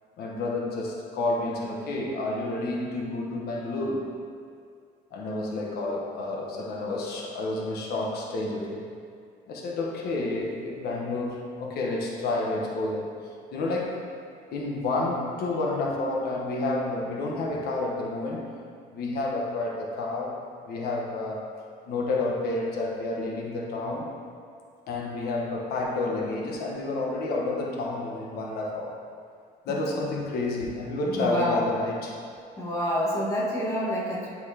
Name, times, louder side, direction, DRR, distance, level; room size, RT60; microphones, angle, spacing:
voice 1, 0.2-4.1 5.1-8.9 9.5-13.1 13.5-14.0 14.5-18.5 18.9-21.5 21.9-24.1 24.9-29.0 29.6-32.2, left 2 dB, 70° left, -2 dB, 1.2 m, -30 dB
voice 2, 31.0-31.7 32.6-34.3, equal, 15° left, -7 dB, 1.7 m, -27 dB
10.0 x 4.5 x 2.9 m, 2.2 s
cardioid pair, 110°, 17 cm